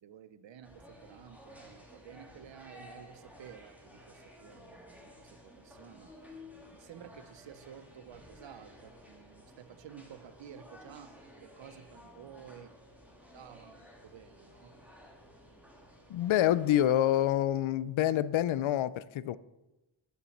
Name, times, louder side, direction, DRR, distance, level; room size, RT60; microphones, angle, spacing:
voice 1, 0.0-6.1 6.7-12.7 13.3-14.8, right 9 dB, 65° right, 0.8 m, -52 dB
sound 1, 0.6-16.8, left 1 dB, 5° right, 2.5 m, -54 dB
voice 2, 16.1-19.4, left 12 dB, 75° left, 0.6 m, -27 dB
10.5 x 6.9 x 6.6 m
wide cardioid pair, 110°, 48 cm